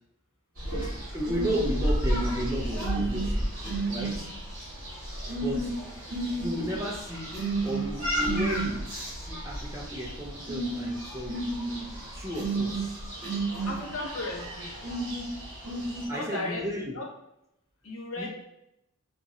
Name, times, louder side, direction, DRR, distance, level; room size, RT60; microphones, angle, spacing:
sound 1, 0.6-16.0, right 1 dB, 40° right, 1.5 m, -31 dB
voice 1, 1.1-3.5 3.9-4.3 5.4-5.7 6.3-7.3 7.6-8.8 9.1-11.4 12.1-13.0 16.1-16.9 18.2-18.3, equal, 15° right, -3 dB, 0.4 m, -33 dB
voice 2, 13.7-14.7 16.1-16.6 16.9-17.1 17.8-18.3, left 2 dB, 70° left, -1 dB, 0.7 m, -35 dB
2.9 x 2.5 x 2.6 m, 0.84 s
head